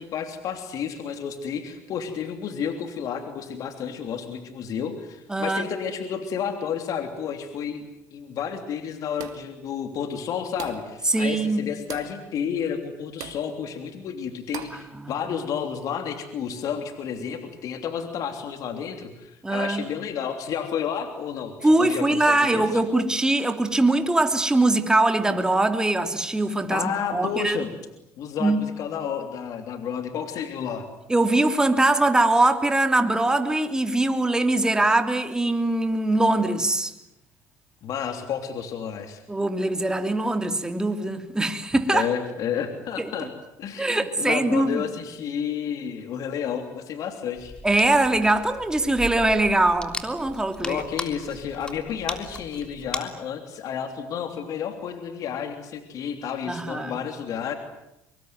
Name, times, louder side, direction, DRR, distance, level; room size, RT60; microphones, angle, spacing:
voice 1, 0.0-7.8 8.1-22.8 26.7-27.7 28.2-30.8 37.8-39.2 41.9-43.3 43.6-47.5 50.6-57.5, left 7 dB, 55° left, 3.2 m, -31 dB
voice 2, 5.3-5.7 11.0-11.7 14.7-15.2 19.4-19.8 21.6-27.6 28.4-28.7 31.1-36.9 39.3-42.1 43.0-43.3 43.8-44.8 47.6-50.8 56.5-56.9, right 2 dB, 10° right, 3.1 m, -22 dB
sound 1, 9.2-9.6 10.6-10.9 11.9-12.2 13.2-13.5 14.5-14.9, right 11 dB, 60° right, 2.6 m, -39 dB
sound 2, 47.4-53.0, left 1 dB, 15° left, 3.4 m, -37 dB
24.5 x 23.5 x 9.5 m
supercardioid pair, 90°, 7 cm